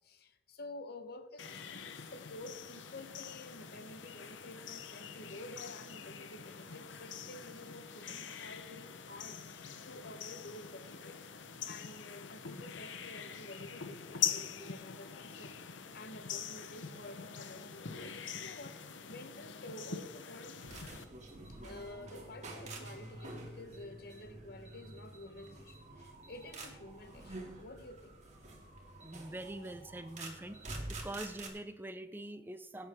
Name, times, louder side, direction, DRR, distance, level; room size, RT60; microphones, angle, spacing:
voice 1, 0.0-11.3 11.6-20.7 21.6-28.2, left 1 dB, 55° left, 1.1 m, -50 dB
sound 1, 1.4-21.0, left 8 dB, 90° left, 0.9 m, -44 dB
sound 2, 20.6-31.5, right 2 dB, 40° right, 2.5 m, -48 dB
voice 2, 29.0-30.6 31.0-32.9, right 1 dB, 10° right, 0.5 m, -44 dB
17.5 x 9.1 x 3.6 m
head